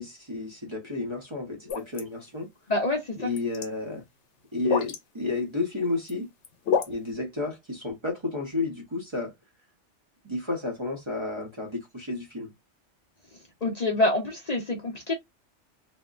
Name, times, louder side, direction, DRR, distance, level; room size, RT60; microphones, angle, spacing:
voice 1, 0.0-2.5 3.2-4.0 4.5-6.3 6.9-9.3 10.2-12.5, left 3 dB, 30° right, 0.7 m, -31 dB
sound 1, 1.7-2.0 3.2-3.6 4.6-5.0 5.8-6.1 6.4-6.9, left 6 dB, 75° left, 1.0 m, -27 dB
voice 2, 2.7-3.3 13.6-15.1, left 2 dB, 45° left, 0.6 m, -26 dB
3.5 x 2.1 x 2.3 m
omnidirectional pair, 1.2 m